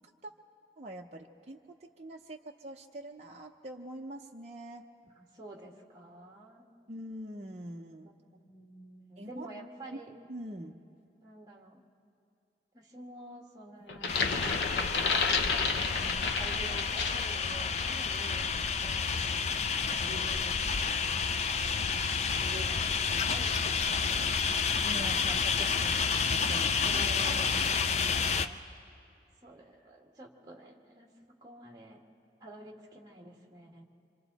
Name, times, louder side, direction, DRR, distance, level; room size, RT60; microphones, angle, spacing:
voice 1, 0.8-1.6 2.0-4.9 6.9-8.1 9.2-9.5 10.3-10.8 24.8-26.0 26.3-27.0, right 1 dB, 40° right, 0 dB, 0.7 m, -44 dB
voice 2, 5.1-6.7 8.0-10.1 11.2-11.8 12.7-14.4 15.6-21.3 21.9-22.0 22.4-24.4 26.8-28.6 29.4-31.1 31.4-32.0 32.4-33.9, right 1 dB, 20° right, 0 dB, 1.8 m, -48 dB
sound 1, 13.9-17.3 17.8-18.0, left 4 dB, 80° left, 0.9 m, -31 dB
sound 2, 14.1-28.5, left 5 dB, 40° left, 0.4 m, -30 dB
26.0 x 26.0 x 4.1 m, 2.4 s
head